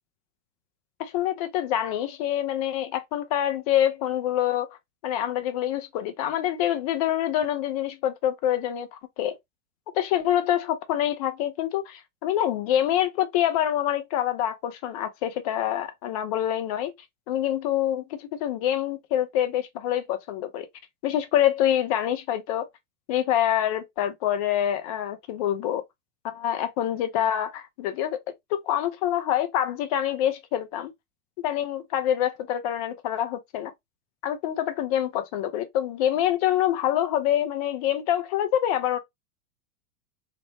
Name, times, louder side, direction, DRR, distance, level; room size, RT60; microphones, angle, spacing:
voice 1, 1.0-4.7 5.0-8.9 9.2-9.4 9.9-16.9 17.3-20.7 21.0-22.7 23.1-25.8 26.2-28.2 28.5-30.9 31.4-33.7 34.2-39.0, left 11 dB, 30° left, 0.3 m, -26 dB
3.3 x 2.0 x 2.6 m
figure-of-eight pair, 90°, 46 cm